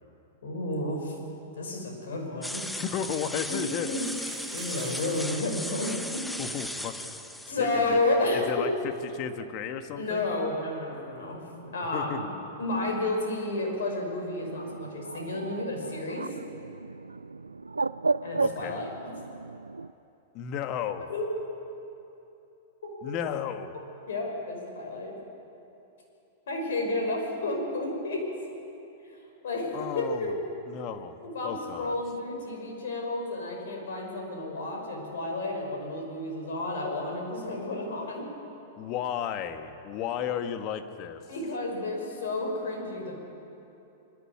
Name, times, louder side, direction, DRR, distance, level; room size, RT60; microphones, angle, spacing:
voice 1, 0.4-1.2 1.6-2.8 3.5-3.6 3.9-6.2 7.5-8.7 9.9-11.4 11.7-12.3 12.6-16.3 18.2-19.1 21.1-21.3 23.0-23.1 24.1-25.1 26.5-28.2 29.0-30.3 31.2-38.3 41.3-43.2, left 2 dB, 70° left, 1 dB, 5.6 m, -31 dB
sound 1, 2.4-7.5, left 1 dB, 5° left, 1.0 m, -36 dB
sound 2, 2.5-2.6 3.7-5.5 5.8-5.9 6.1-6.3 6.9-7.0 7.3-7.4 9.4-9.5, right 10 dB, 60° right, 1.7 m, -47 dB
voice 2, 2.7-3.9 6.4-7.1 7.6-8.0 8.3-10.3 11.9-12.3 18.4-18.8 20.3-21.1 23.0-23.7 29.7-30.3 30.7-31.2 31.4-32.0 38.8-41.2, left 8 dB, 40° left, 8 dB, 1.5 m, -34 dB
Bird, 14.4-19.9, right 3 dB, 90° right, 0.4 m, -33 dB
24.5 x 11.5 x 9.5 m, 2.9 s
hypercardioid pair, 105°, 0 cm